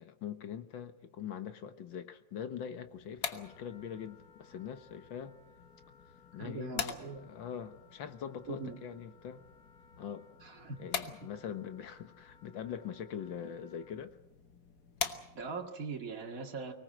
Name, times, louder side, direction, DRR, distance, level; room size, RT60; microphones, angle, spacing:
voice 1, 0.0-5.3 6.3-9.4 10.0-10.3 10.8-14.2, left 8 dB, 85° left, 10 dB, 2.0 m, -43 dB
sound 1, 2.8-15.7, left 7 dB, 60° left, 1.8 m, -45 dB
Wind instrument woodwind instrument, 3.4-14.0, left 5 dB, 25° left, 2.7 m, -63 dB
voice 2, 6.4-7.3 8.5-8.8 10.4-10.8 15.4-16.7, right 4 dB, 45° right, 2 dB, 2.4 m, -41 dB
24.5 x 19.0 x 7.7 m, 0.89 s
omnidirectional pair, 2.0 m